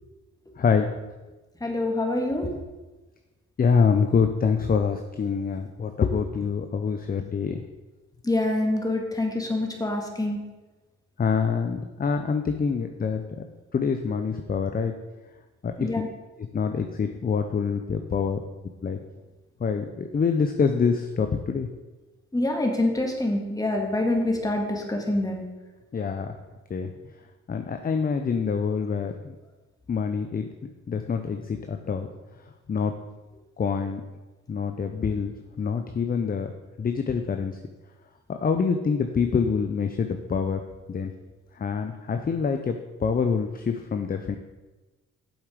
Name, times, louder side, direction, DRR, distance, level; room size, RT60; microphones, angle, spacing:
voice 1, 0.6-0.9 3.6-7.6 11.2-13.4 13.7-14.9 15.6-15.9 16.5-18.4 18.8-19.0 19.6-21.7 25.9-26.3 26.7-26.9 27.5-29.3 29.9-30.5 30.9-32.1 32.7-32.9 33.6-34.0 34.5-35.3 35.6-36.5 36.8-37.6 38.3-40.6 40.9-41.1 41.5-44.4, left 5 dB, 30° left, 6 dB, 0.7 m, -25 dB
voice 2, 1.6-2.5 8.2-10.4 15.8-16.1 22.3-25.4, left 1 dB, 10° left, 2 dB, 1.9 m, -26 dB
8.1 x 7.1 x 5.0 m, 1.2 s
cardioid pair, 90°, 30 cm